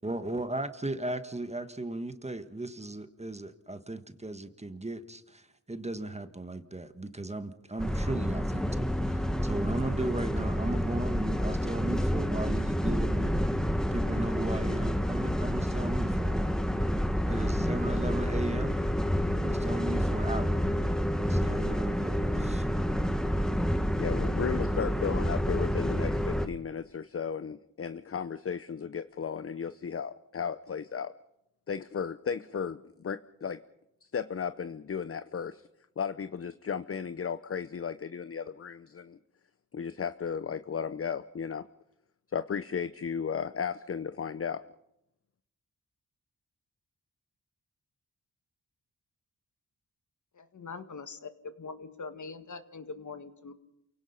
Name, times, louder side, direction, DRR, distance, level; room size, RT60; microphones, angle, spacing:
voice 1, 0.0-13.6 13.9-16.6 17.3-18.8 19.4-20.6 21.3-22.6, right 2 dB, 20° right, 9 dB, 1.5 m, -36 dB
sound 1, 7.8-26.5, equal, ahead, 1.3 m, -29 dB
voice 2, 24.0-31.1 31.7-33.6 34.1-35.6 36.0-39.2 39.7-41.7 42.3-44.6, left 7 dB, 40° left, 12 dB, 0.7 m, -35 dB
voice 3, 50.3-53.5, left 4 dB, 55° left, 9 dB, 1.8 m, -43 dB
28.5 x 17.5 x 5.7 m, 0.83 s
cardioid pair, 70°, 35 cm